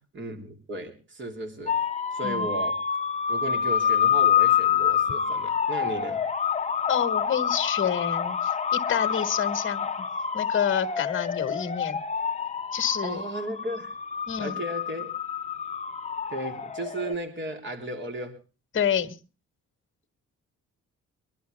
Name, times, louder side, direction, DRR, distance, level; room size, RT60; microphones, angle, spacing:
voice 1, 0.1-1.8 2.1-2.8 3.3-6.2 13.0-13.9 14.4-15.1 16.3-18.4, right 1 dB, 40° right, 4 dB, 3.3 m, -35 dB
sound 1, 1.7-17.1, left 7 dB, 25° left, 0.8 m, -27 dB
voice 2, 6.9-9.9 10.3-12.0 12.7-13.2 14.3-14.6 18.7-19.2, left 8 dB, 40° left, 7 dB, 1.6 m, -28 dB
23.5 x 12.0 x 3.4 m, 0.32 s
cardioid pair, 90°, 30 cm